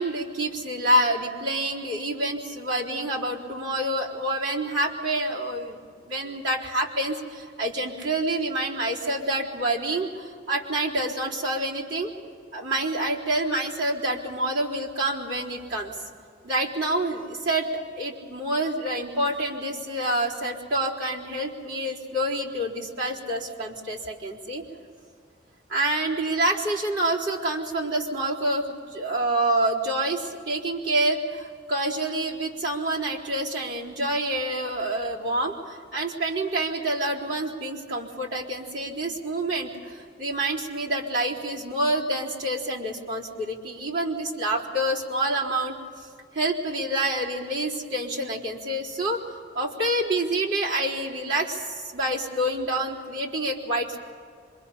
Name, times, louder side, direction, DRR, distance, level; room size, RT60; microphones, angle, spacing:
voice 1, 0.0-5.8 6.1-12.1 12.5-16.0 16.4-24.6 25.7-28.7 28.9-45.8 46.3-54.0, right 1 dB, 80° right, -4 dB, 3.9 m, -27 dB
26.0 x 24.0 x 5.7 m, 2.2 s
head